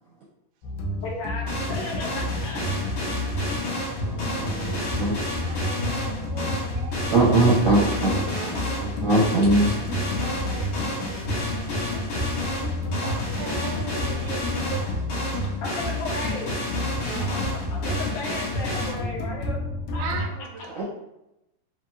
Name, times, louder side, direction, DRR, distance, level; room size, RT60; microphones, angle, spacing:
sound 1, 0.6-20.3, left 1 dB, 90° left, 1.8 m, -30 dB
voice 1, 1.0-2.6 10.6-10.7 15.6-16.5 17.7-19.6 19.9-20.0, left 2 dB, 70° left, -3 dB, 1.9 m, -34 dB
sound 2, 1.5-18.9, left 1 dB, 55° left, 2.4 m, -31 dB
voice 2, 4.0-5.3 7.1-9.7 20.7-20.8, right 2 dB, 60° right, -9 dB, 1.8 m, -22 dB
voice 3, 5.4-7.2 7.9-8.4 10.2-11.1 12.2-15.5 17.9-18.0 20.0-20.6, right 5 dB, 90° right, 3 dB, 2.6 m, -39 dB
6.2 x 2.8 x 2.3 m, 0.87 s
omnidirectional pair, 4.5 m